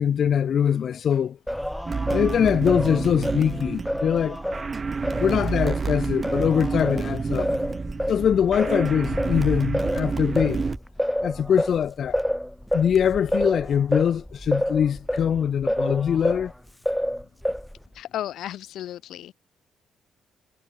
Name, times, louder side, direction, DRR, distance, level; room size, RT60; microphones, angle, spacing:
voice 1, 0.0-1.4 2.1-4.4 5.2-7.5 8.1-10.6 11.2-12.2 12.7-16.5, left 8 dB, 45° left, 0.5 m, -23 dB
Singing, 1.5-5.8 6.2-16.5 16.9-17.9, equal, ahead, 1.0 m, -29 dB
sound 1, 1.9-10.8, right 4 dB, 25° right, 1.2 m, -29 dB
voice 2, 17.9-19.3, left 12 dB, 85° left, 3.1 m, -34 dB
cardioid pair, 175°, 0 cm